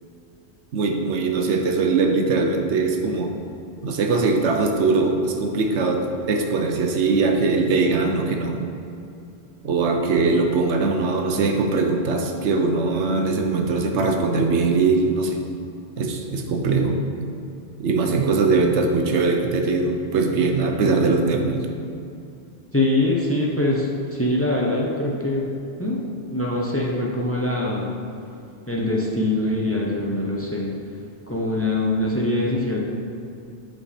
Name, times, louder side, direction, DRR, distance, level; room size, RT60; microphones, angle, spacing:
voice 1, 0.7-3.3 3.8-8.6 9.6-15.4 16.0-17.1 17.8-21.7, right 3 dB, 80° right, 3 dB, 1.0 m, -21 dB
voice 2, 22.7-25.4 25.8-26.0 26.3-27.9 28.7-30.7 31.3-32.8, left 1 dB, 15° left, -3 dB, 0.7 m, -23 dB
8.2 x 4.6 x 4.3 m, 2.6 s
omnidirectional pair, 1.2 m